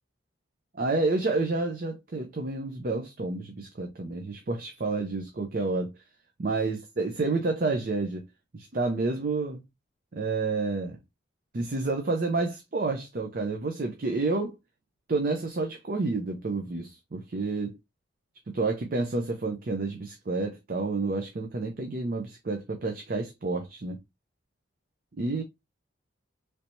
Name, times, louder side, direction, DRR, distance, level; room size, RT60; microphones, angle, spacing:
voice 1, 0.7-5.9 6.4-8.2 8.5-9.6 10.1-11.0 11.5-14.5 15.1-17.8 18.5-24.0 25.2-25.4, right 3 dB, 45° right, 0.5 m, -29 dB
3.2 x 2.7 x 2.9 m
head